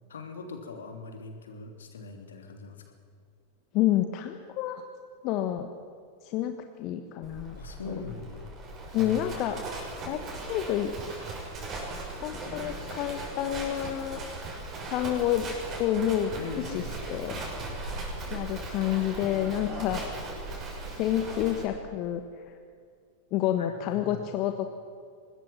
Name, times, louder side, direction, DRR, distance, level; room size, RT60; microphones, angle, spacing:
voice 1, 0.1-2.8 7.6-8.5 9.0-9.4 16.4-17.0 23.6-24.3, left 4 dB, 65° left, 4 dB, 3.2 m, -41 dB
voice 2, 3.7-4.8 5.2-5.7 6.2-7.6 7.9-8.0 8.9-9.6 10.1-10.9 12.2-14.2 14.9-15.5 15.8-16.3 16.7-16.8 17.1-17.4 18.3-20.1 20.9-22.6 23.3-24.7, left 12 dB, 40° left, 7 dB, 1.3 m, -29 dB
Livestock farm animals working animals, 7.2-21.6, right 2 dB, 30° right, 6.7 m, -38 dB
25.0 x 20.5 x 6.0 m, 2.2 s
figure-of-eight pair, 90°, 0 cm